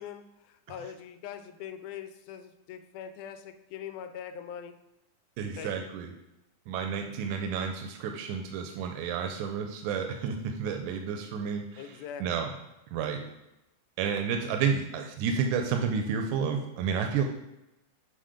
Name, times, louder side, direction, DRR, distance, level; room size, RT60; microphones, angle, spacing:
voice 1, 0.0-4.8 5.6-5.9 10.1-10.2 11.8-12.5, left 8 dB, 85° left, 8 dB, 2.1 m, -42 dB
voice 2, 5.4-6.1 6.7-11.8 12.2-12.5 12.9-13.2 14.0-17.2, right 6 dB, 90° right, 5 dB, 2.1 m, -30 dB
7.5 x 4.4 x 5.0 m, 0.93 s
omnidirectional pair, 3.4 m